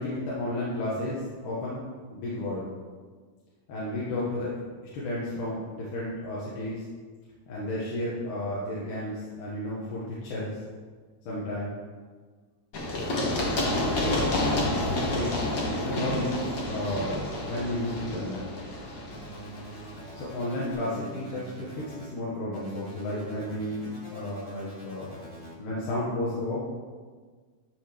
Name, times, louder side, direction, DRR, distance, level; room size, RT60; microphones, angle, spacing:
voice 1, 0.0-1.8 2.1-2.7 3.7-4.5 4.9-6.9 7.5-10.6 11.3-11.7 13.6-14.4 14.8-15.4 15.8-18.4 20.1-25.2 25.6-26.6, left 1 dB, 80° left, -7 dB, 2.7 m, -32 dB
Run, 12.7-20.4, left 1 dB, 60° left, 1.0 m, -30 dB
sound 1, 19.1-22.1 22.5-25.5, right 1 dB, 25° left, 1.6 m, -44 dB
12.5 x 5.0 x 3.1 m, 1.5 s
omnidirectional pair, 3.7 m